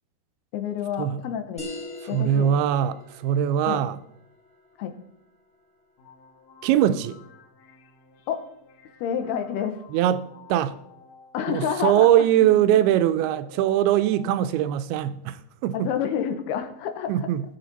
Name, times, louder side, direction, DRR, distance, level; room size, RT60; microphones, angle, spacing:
voice 1, 0.5-1.7 2.1-2.5 3.7-3.8 4.8-4.9 8.3-8.4 9.0-9.8 11.3-12.1 15.7-17.1, left 8 dB, 85° left, 3.0 m, -28 dB
sound 1, 1.6-6.7, left 1 dB, ahead, 1.8 m, -43 dB
voice 2, 2.1-4.0 6.6-7.2 9.9-10.2 10.5-10.8 11.5-15.9 17.1-17.4, right 11 dB, 85° right, 2.5 m, -21 dB
sound 2, 6.0-14.7, left 4 dB, 60° left, 2.0 m, -51 dB
19.0 x 6.5 x 4.1 m
omnidirectional pair, 4.5 m